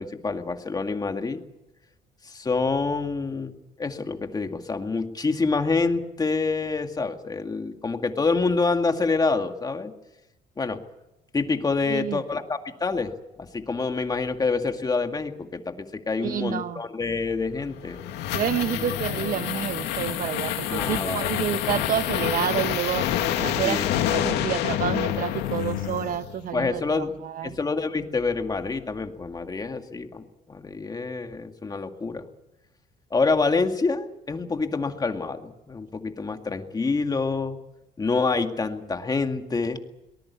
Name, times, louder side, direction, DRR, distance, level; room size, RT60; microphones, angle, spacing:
voice 1, 0.0-1.4 2.3-9.9 10.6-10.8 11.3-13.1 13.5-18.0 20.7-21.3 23.6-23.9 26.5-27.1 27.4-32.2 33.1-37.6 38.0-39.8, left 4 dB, 25° left, 2.1 m, -27 dB
voice 2, 11.8-12.2 16.2-16.8 18.3-23.1 23.4-27.6, right 10 dB, 55° right, 1.2 m, -29 dB
sound 1, 17.6-26.4, left 11 dB, 90° left, 2.3 m, -27 dB
23.5 x 19.0 x 8.4 m
cardioid pair, 110°, 17 cm